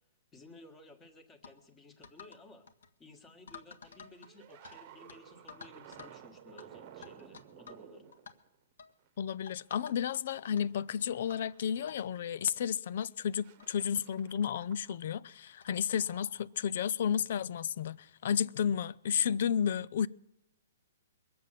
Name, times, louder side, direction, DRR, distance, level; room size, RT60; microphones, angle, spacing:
voice 1, 0.3-2.7 3.0-8.1, left 2 dB, 10° left, 1.6 m, -56 dB
sound 1, 1.4-1.6 2.0-2.4 2.7-2.9 3.5-4.8 5.1-5.2 5.5-6.2 6.6-6.7 7.0-7.8 8.1-8.3 8.8-9.0 9.5-10.2 10.6-10.7 11.3-11.5 11.9-12.0 12.7-12.8 13.0-13.1 13.6-13.7 14.6-14.7 15.6-15.8, left 6 dB, 75° left, 1.6 m, -51 dB
sound 2, 3.8-9.1 9.7-10.1 10.4-12.1 12.7-13.0 13.3-15.1 15.4-16.5 18.3-18.4, right 10 dB, 30° right, 1.1 m, -55 dB
voice 2, 9.2-20.1, left 8 dB, 50° left, 0.5 m, -32 dB
22.0 x 7.8 x 7.4 m
hypercardioid pair, 165°, 0 cm